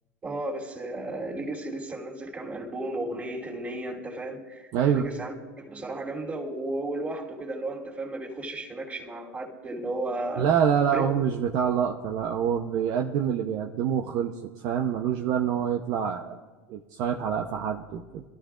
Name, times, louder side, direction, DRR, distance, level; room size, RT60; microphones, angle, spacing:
voice 1, 0.2-5.3 5.6-10.4 10.9-11.0, right 2 dB, 20° right, -1 dB, 3.3 m, -34 dB
voice 2, 4.7-5.1 10.4-14.3 14.6-16.4 16.7-18.2, right 8 dB, 55° right, 3 dB, 0.9 m, -26 dB
26.0 x 13.0 x 2.5 m, 1.3 s
hypercardioid pair, 95°, 8 cm